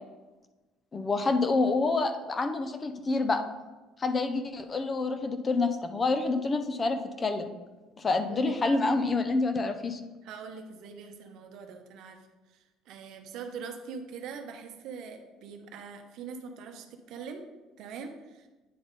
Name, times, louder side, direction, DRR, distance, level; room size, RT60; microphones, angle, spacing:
voice 1, 0.9-3.4 4.0-7.5 8.0-10.0, left 3 dB, 20° left, 8 dB, 0.4 m, -27 dB
voice 2, 8.3-8.8 10.2-17.5 17.8-18.5, right 5 dB, 60° right, 5 dB, 0.8 m, -43 dB
9.3 x 3.6 x 3.9 m, 1.2 s
cardioid pair, 160°, 0 cm